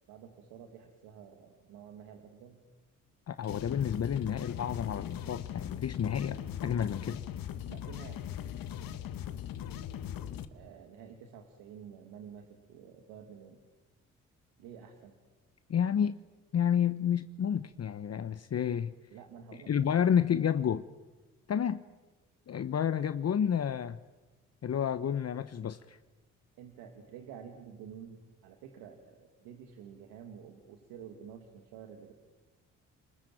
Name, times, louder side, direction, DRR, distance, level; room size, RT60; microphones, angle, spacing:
voice 1, 0.1-2.6 7.7-8.4 10.5-13.6 14.6-15.2 19.1-19.9 26.6-32.1, right 7 dB, 80° right, 5 dB, 2.4 m, -50 dB
voice 2, 3.3-7.2 15.7-16.2 16.5-18.9 19.5-20.9 21.5-21.8 22.5-24.0 24.6-26.0, left 8 dB, 45° left, 12 dB, 1.0 m, -30 dB
sound 1, 3.4-10.4, left 10 dB, 65° left, 1.6 m, -40 dB
29.5 x 20.5 x 9.0 m, 1.2 s
hypercardioid pair, 50°, 36 cm